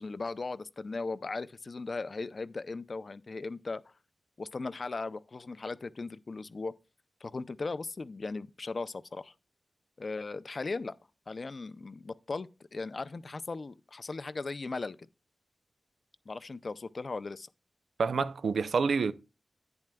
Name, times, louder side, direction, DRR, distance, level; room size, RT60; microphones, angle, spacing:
voice 1, 0.0-3.9 4.4-6.7 7.2-9.3 10.0-10.9 11.3-15.0 16.3-17.5, left 3 dB, 50° left, 0.4 m, -38 dB
voice 2, 18.0-19.1, right 5 dB, 85° right, 0.4 m, -27 dB
10.5 x 8.7 x 2.2 m
wide cardioid pair, 95°, 0 cm